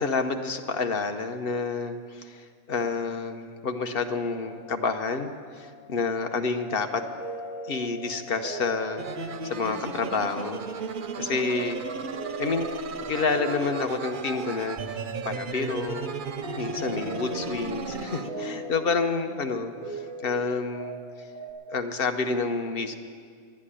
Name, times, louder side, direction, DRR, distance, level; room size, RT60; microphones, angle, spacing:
voice 1, 0.0-7.0 7.7-9.1 9.4-10.6 11.2-11.8 12.4-12.7 13.1-14.8 15.2-16.1 16.6-21.3 21.7-22.9, left 4 dB, 50° left, 7 dB, 1.0 m, -29 dB
sound 1, 4.0-21.5, right 1 dB, 80° left, 2.7 m, -41 dB
sound 2, 9.0-18.3, right 4 dB, 50° right, 0.7 m, -35 dB
11.5 x 9.7 x 9.9 m, 2.1 s
omnidirectional pair, 1.3 m